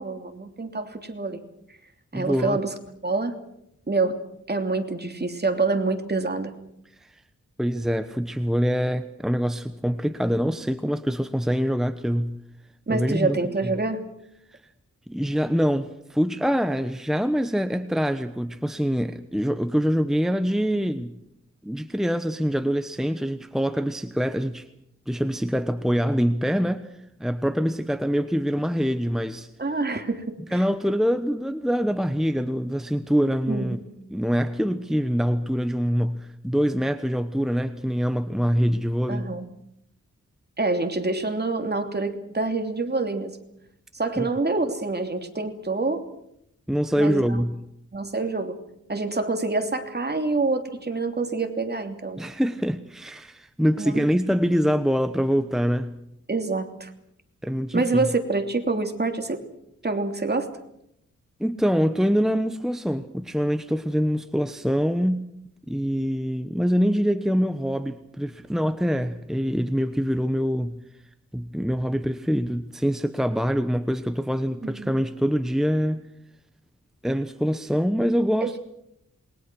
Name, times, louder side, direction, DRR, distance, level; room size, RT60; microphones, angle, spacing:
voice 1, 0.0-1.4 2.1-2.7 3.0-3.3 3.9-4.2 4.5-6.6 12.9-14.1 29.6-30.6 33.5-33.8 39.1-39.5 40.6-43.4 43.9-46.0 47.0-47.4 47.9-48.6 48.9-52.3 53.8-54.0 56.3-56.9 57.7-59.5 59.8-60.5 74.6-74.9 78.4-78.5, right 3 dB, 30° right, 5 dB, 3.0 m, -26 dB
voice 2, 2.1-2.6 7.0-7.2 7.6-12.4 12.9-13.4 13.6-13.7 14.5-14.6 15.1-21.2 21.6-24.7 25.1-29.5 30.5-33.8 34.1-39.3 44.2-44.3 46.7-47.6 52.2-56.0 57.4-58.1 61.4-65.3 65.7-70.8 71.3-76.0 77.0-78.6, equal, ahead, 9 dB, 1.0 m, -24 dB
27.5 x 22.0 x 6.3 m, 0.77 s
wide cardioid pair, 80°, 31 cm